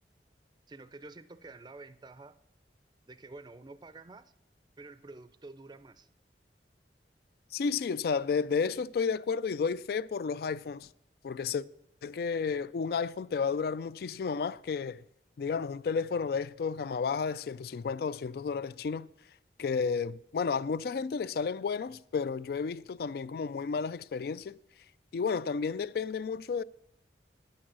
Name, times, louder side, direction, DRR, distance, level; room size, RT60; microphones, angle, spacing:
voice 1, 0.7-2.4 3.1-4.3 4.8-6.1, right 3 dB, 25° right, 0.4 m, -49 dB
voice 2, 7.5-10.9 11.2-11.6 12.0-15.0 15.4-19.1 19.6-24.6 25.1-26.6, left 5 dB, 55° left, 0.3 m, -32 dB
10.0 x 8.7 x 6.1 m
head